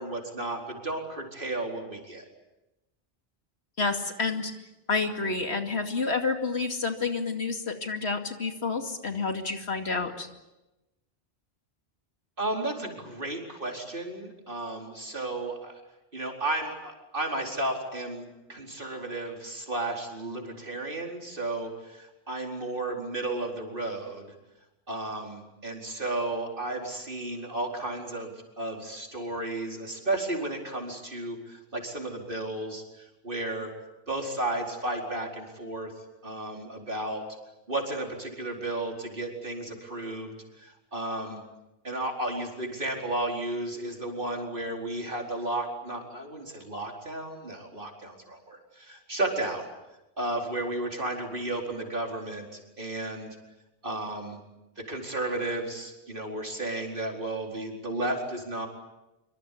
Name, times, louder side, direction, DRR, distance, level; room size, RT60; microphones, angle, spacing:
voice 1, 0.0-2.2 12.4-15.8 16.1-24.3 24.9-32.8 33.2-33.7 34.1-35.9 36.2-37.3 37.7-41.4 41.8-49.7 50.2-53.4 53.8-54.4 54.8-58.7, right 2 dB, 55° right, 1 dB, 4.7 m, -33 dB
voice 2, 3.8-4.5 4.9-10.3, left 4 dB, 85° left, 5 dB, 2.7 m, -29 dB
25.5 x 24.5 x 8.6 m, 0.97 s
omnidirectional pair, 1.1 m